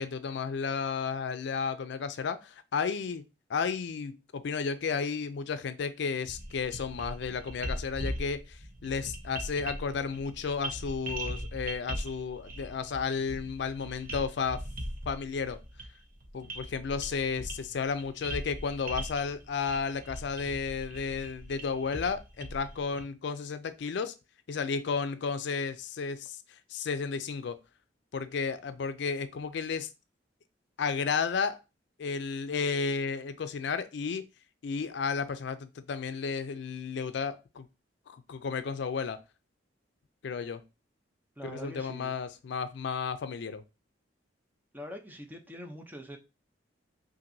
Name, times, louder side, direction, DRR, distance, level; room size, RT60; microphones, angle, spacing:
voice 1, 0.0-14.6 15.1-15.6 16.3-24.1 24.5-27.6 28.1-29.9 30.8-31.6 32.0-34.3 34.6-37.7 38.1-39.2 40.2-40.6 41.4-43.6, left 5 dB, 70° left, 0.4 m, -33 dB
sound 1, 6.2-23.0, right 1 dB, 50° right, 0.9 m, -40 dB
voice 2, 41.4-42.1 44.7-46.2, equal, 10° right, 0.6 m, -43 dB
5.8 x 2.6 x 2.6 m
head